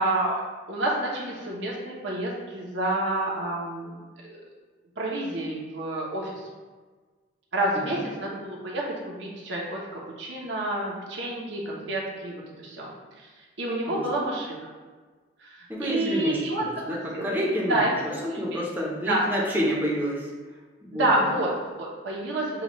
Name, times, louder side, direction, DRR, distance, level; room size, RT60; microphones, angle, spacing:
voice 1, 0.0-4.4 5.0-6.5 7.5-12.9 13.2-13.3 13.6-14.6 15.4-16.7 17.1-17.3 17.7-17.9 18.3-18.6 19.1-19.2 20.9-22.6, right 1 dB, 65° right, -3 dB, 0.9 m, -29 dB
voice 2, 15.7-16.4 16.8-20.3 20.9-21.3, equal, 10° right, -4 dB, 0.8 m, -28 dB
6.9 x 2.4 x 3.0 m, 1.4 s
head